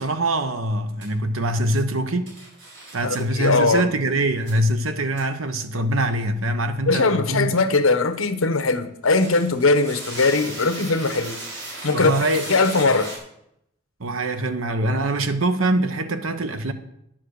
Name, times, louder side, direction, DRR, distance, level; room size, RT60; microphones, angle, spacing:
voice 1, 0.0-2.3 2.9-7.5 11.9-12.5 14.0-16.7, right 1 dB, 85° right, 1.1 m, -23 dB
sound 1, 1.0-1.1 2.3-3.2 4.5-4.6 5.2-5.3 9.0-13.2, right 2 dB, 65° right, 4.6 m, -36 dB
voice 2, 3.0-3.9 6.8-11.4 11.8-12.1 12.5-13.1, left 3 dB, 85° left, 1.0 m, -20 dB
10.5 x 7.5 x 6.5 m
head